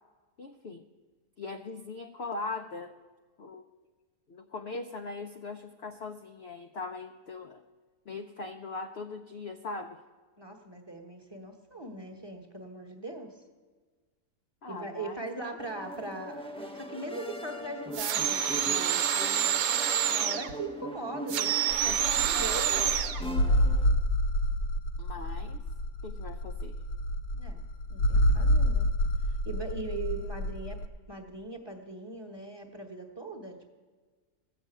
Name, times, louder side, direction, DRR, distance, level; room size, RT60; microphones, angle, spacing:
voice 1, 0.4-0.8 1.4-2.9 3.4-3.7 4.3-7.6 8.1-10.0 14.6-15.6 25.0-25.6 26.0-26.8, left 3 dB, 60° left, 5 dB, 0.7 m, -40 dB
voice 2, 10.4-13.4 14.7-19.0 19.9-23.0 27.3-27.6 27.9-28.9 29.3-30.8 31.1-33.7, right 2 dB, 20° right, 4 dB, 1.1 m, -40 dB
sound 1, 15.6-23.9, equal, 5° left, 0.4 m, -40 dB
sound 2, 17.9-20.5 21.3-23.2, right 9 dB, 70° right, 1.1 m, -27 dB
sound 3, 21.7-30.9, equal, 85° left, 1.3 m, -28 dB
15.0 x 6.9 x 9.0 m, 1.4 s
omnidirectional pair, 1.7 m